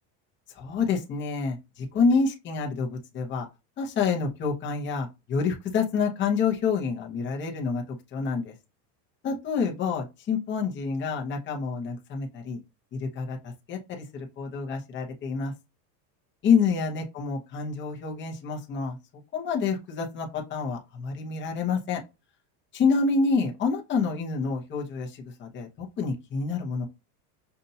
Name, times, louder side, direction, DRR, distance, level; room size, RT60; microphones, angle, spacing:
voice 1, 0.5-3.5 3.8-7.8 8.1-8.5 9.2-12.6 12.9-15.5 16.4-19.0 19.3-22.0 22.7-26.9, left 5 dB, 25° left, 0 dB, 0.9 m, -28 dB
5.6 x 2.6 x 2.7 m, 0.25 s
supercardioid pair, 155°, 49 cm